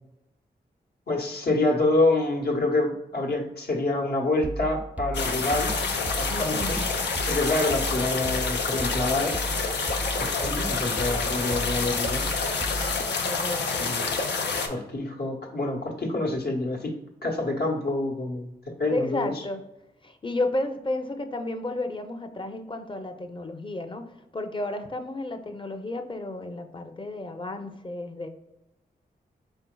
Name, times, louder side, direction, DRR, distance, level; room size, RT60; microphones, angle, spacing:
voice 1, 1.1-5.7 6.2-6.8 7.3-9.3 10.2-12.3 13.8-14.0 14.6-16.9 17.2-18.5 18.8-19.4, left 2 dB, 70° left, 0 dB, 1.1 m, -27 dB
sound 1, 4.4-13.1, right 1 dB, 10° right, 0.4 m, -35 dB
sound 2, 5.1-14.7, left 4 dB, 85° left, 0.6 m, -28 dB
voice 2, 6.3-6.9 13.0-13.9 18.9-19.6 20.0-24.0 24.3-28.3, left 2 dB, 30° left, 7 dB, 0.6 m, -32 dB
4.5 x 3.8 x 2.3 m, 0.90 s
cardioid pair, 45°, 17 cm